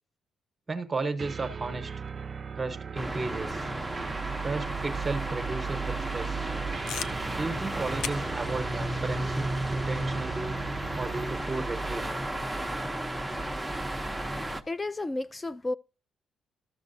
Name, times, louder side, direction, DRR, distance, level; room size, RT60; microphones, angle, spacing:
voice 1, 0.7-1.9 2.5-3.7 4.4-6.5 7.4-10.6 11.0-12.2, right 3 dB, 25° right, 1.0 m, -34 dB
sound 1, 1.2-11.5, right 7 dB, 40° right, 0.5 m, -38 dB
sound 2, 3.0-14.6, right 1 dB, 5° right, 0.7 m, -33 dB
sound 3, 6.9-11.6, left 8 dB, 75° left, 0.5 m, -43 dB
voice 2, 14.7-15.7, left 2 dB, 20° left, 0.4 m, -32 dB
13.5 x 6.4 x 2.6 m
cardioid pair, 90°, 0 cm